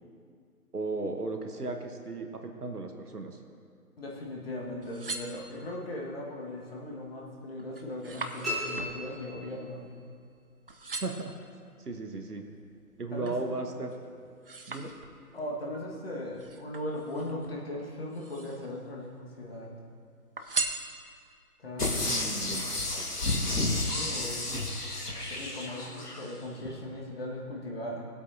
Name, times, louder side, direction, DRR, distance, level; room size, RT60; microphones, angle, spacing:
voice 1, 0.7-3.4 10.9-11.3 11.8-12.4 13.0-13.9 14.7-14.9 22.0-22.7, right 3 dB, 80° right, 4 dB, 1.3 m, -35 dB
voice 2, 4.0-9.9 13.1-13.4 15.3-19.7 21.6-22.1 23.7-24.6 25.2-28.1, left 1 dB, 40° left, -3 dB, 1.7 m, -38 dB
sound 1, 4.7-5.9 6.5-6.9 7.3-10.4 10.7-11.4 12.0-13.5 13.9-15.4 16.3-17.5 18.0-18.8 19.1-19.9 20.4-21.4 21.9-22.0, right 3 dB, 40° right, 0.6 m, -39 dB
sound 2, 8.4-10.0, left 1 dB, ahead, 2.4 m, -36 dB
sound 3, 21.8-26.2 26.7-26.8, left 2 dB, 85° left, 1.6 m, -31 dB
18.0 x 8.3 x 2.8 m, 2.2 s
figure-of-eight pair, 145°, 45 cm